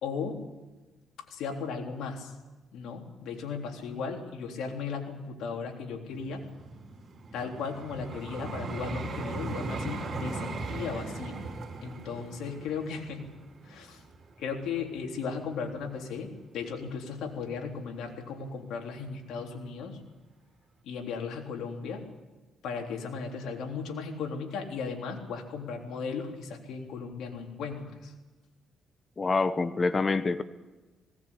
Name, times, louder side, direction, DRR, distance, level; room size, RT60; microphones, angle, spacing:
voice 1, 0.0-0.4 1.3-2.3 2.7-6.5 7.3-11.4 11.8-13.3 13.6-14.0 14.4-20.0 20.8-22.1 22.6-28.1, left 5 dB, 80° left, 2 dB, 3.6 m, -36 dB
Vehicle, 6.1-15.2 15.8-16.0, right 3 dB, 40° right, 5.1 m, -39 dB
voice 2, 29.2-30.4, left 3 dB, 30° left, 13 dB, 1.0 m, -26 dB
19.5 x 18.5 x 8.6 m, 1.2 s
cardioid pair, 90°, 0 cm